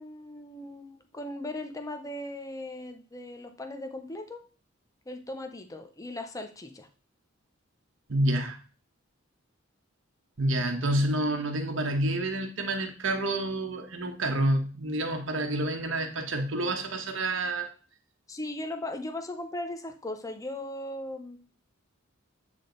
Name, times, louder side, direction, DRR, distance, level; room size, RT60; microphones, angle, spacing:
voice 1, 0.0-4.4 5.1-6.9 18.3-21.4, left 1 dB, 15° left, 0.7 m, -38 dB
voice 2, 8.1-8.6 10.4-17.7, right 1 dB, 65° right, 1.1 m, -28 dB
8.7 x 3.6 x 3.9 m
head